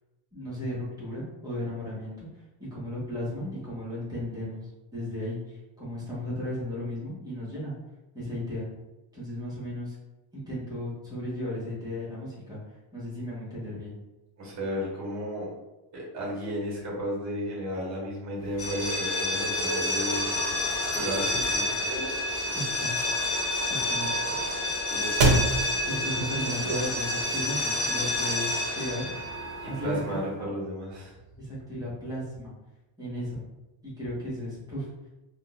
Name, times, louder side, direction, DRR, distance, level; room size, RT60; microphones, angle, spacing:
voice 1, 0.3-2.3 2.7-7.7 8.1-8.6 9.1-9.9 10.3-13.9 22.5-23.0 23.6-24.1 25.8-28.5 28.7-29.1 29.6-30.2 31.4-32.5 33.0-33.4 33.8-34.9, left 1 dB, 10° right, -9 dB, 1.1 m, -35 dB
voice 2, 14.4-15.5 15.9-22.1 24.9-25.4 29.6-31.2, equal, 35° right, -4 dB, 1.1 m, -34 dB
sound 1, 18.5-30.2, left 1 dB, 30° left, 1.5 m, -29 dB
sound 2, 20.1-27.2, right 2 dB, 80° right, 0.8 m, -31 dB
3.7 x 2.5 x 2.3 m, 1.0 s
cardioid pair, 170°, 50 cm